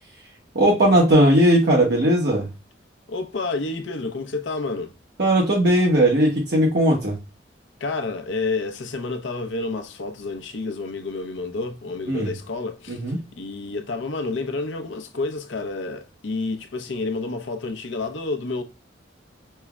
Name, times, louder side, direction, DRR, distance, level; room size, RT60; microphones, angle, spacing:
voice 1, 0.5-2.5 5.2-7.2 12.1-12.3 12.9-13.2, right 1 dB, 60° right, 1.0 m, -18 dB
voice 2, 3.1-4.9 7.8-13.0 13.3-18.6, left 3 dB, 85° left, 0.6 m, -29 dB
5.4 x 2.1 x 2.3 m
head